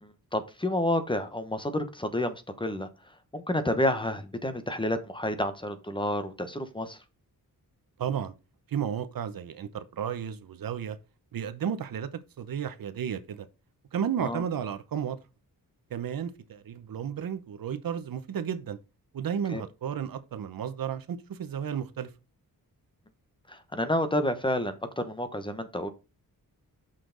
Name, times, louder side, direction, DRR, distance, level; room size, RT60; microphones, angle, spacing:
voice 1, 0.0-2.9 3.3-7.0 14.2-14.4 19.5-19.6 23.5-25.9, left 1 dB, 15° left, 1.0 m, -30 dB
voice 2, 8.0-8.3 8.7-11.0 11.3-13.5 13.9-15.2 15.9-18.8 19.1-22.1, right 8 dB, 70° right, 0.9 m, -33 dB
6.5 x 5.8 x 3.9 m
wide cardioid pair, 130°, 36 cm